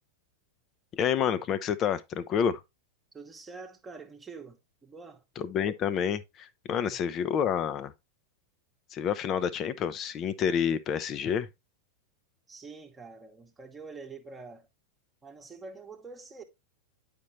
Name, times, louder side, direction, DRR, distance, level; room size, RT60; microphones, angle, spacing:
voice 1, 0.9-2.6 5.4-7.9 8.9-11.5, left 8 dB, 30° left, 0.7 m, -29 dB
voice 2, 3.1-5.2 6.7-7.0 12.5-14.7 15.2-16.4, right 4 dB, 15° right, 1.2 m, -46 dB
9.6 x 5.3 x 3.0 m
figure-of-eight pair, 90°, 0 cm